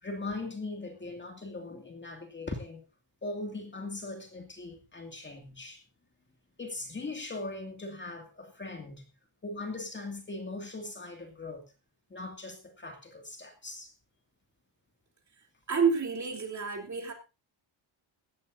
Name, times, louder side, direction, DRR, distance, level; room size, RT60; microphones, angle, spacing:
voice 1, 0.0-2.8 3.2-5.8 6.6-9.1 9.4-11.7 12.1-13.9, left 2 dB, 20° left, 2.4 m, -40 dB
voice 2, 15.7-17.1, right 5 dB, 35° right, 3.4 m, -29 dB
16.5 x 15.5 x 2.7 m
cardioid pair, 160°, 50 cm